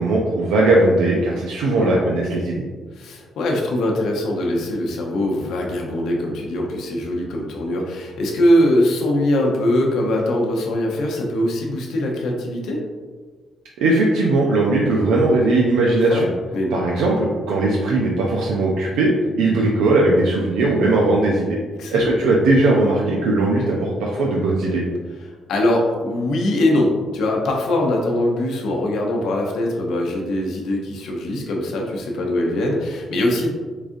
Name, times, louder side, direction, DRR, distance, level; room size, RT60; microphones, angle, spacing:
voice 1, 0.0-2.6 13.8-16.2 16.7-21.6 21.9-24.8, right 2 dB, 90° right, -3 dB, 0.4 m, -18 dB
voice 2, 2.9-12.8 16.0-16.2 16.5-16.8 21.8-22.1 25.5-33.5, left 1 dB, 80° left, 0 dB, 0.7 m, -22 dB
4.7 x 2.4 x 2.6 m, 1.5 s
cardioid pair, 75°, 0 cm